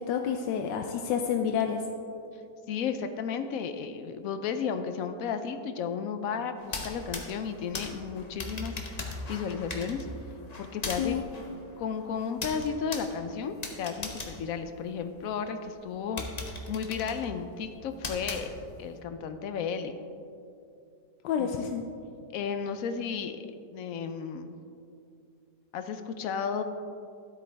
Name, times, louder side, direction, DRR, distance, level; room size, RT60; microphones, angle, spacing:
voice 1, 0.1-1.8 11.0-11.2 21.2-21.8, left 8 dB, 90° left, 4 dB, 1.3 m, -29 dB
voice 2, 2.7-8.7 9.3-10.1 10.6-11.3 11.8-16.3 16.7-18.5 18.8-20.0 21.4-21.7 22.3-23.4 23.7-24.6 25.7-26.6, left 6 dB, 70° left, 9 dB, 0.8 m, -33 dB
sound 1, 6.6-15.3 15.8-15.9 16.2-18.9, left 2 dB, 35° left, 0.7 m, -39 dB
13.0 x 8.3 x 3.4 m, 2.5 s
omnidirectional pair, 1.9 m